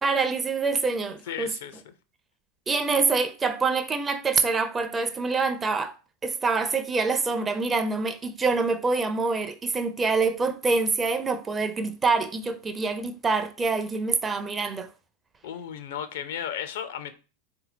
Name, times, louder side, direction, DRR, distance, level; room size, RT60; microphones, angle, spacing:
voice 1, 0.0-1.5 2.7-5.9 6.2-14.9, right 4 dB, 20° right, 0.5 m, -25 dB
voice 2, 1.3-1.8 15.4-17.1, left 9 dB, 60° left, 0.5 m, -34 dB
4.1 x 2.7 x 3.8 m
figure-of-eight pair, 85°, 0 cm